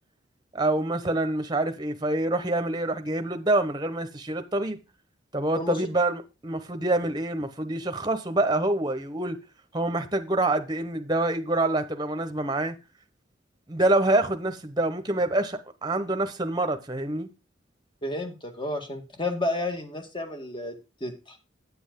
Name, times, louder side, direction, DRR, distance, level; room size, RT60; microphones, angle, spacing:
voice 1, 0.5-4.8 5.3-9.4 9.7-12.8 13.7-17.3, right 2 dB, 25° right, 1.1 m, -26 dB
voice 2, 18.0-20.7 21.0-21.4, left 2 dB, 25° left, 1.9 m, -31 dB
9.4 x 7.9 x 3.8 m
head